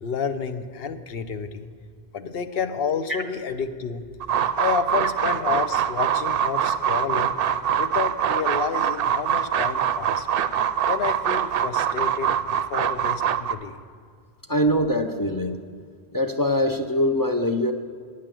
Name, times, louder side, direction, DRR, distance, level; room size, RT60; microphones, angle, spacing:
voice 1, 0.0-1.7 2.1-4.0 4.5-7.3 7.8-10.3 10.9-12.3 12.7-13.8, left 6 dB, 65° left, 8 dB, 0.9 m, -29 dB
Hyper ventilation hyper breathing, 4.2-13.5, right 8 dB, 65° right, 0.7 m, -24 dB
voice 2, 14.5-15.6 16.1-17.7, equal, 25° left, 5 dB, 0.5 m, -23 dB
9.7 x 8.6 x 7.5 m, 2.1 s
omnidirectional pair, 1.1 m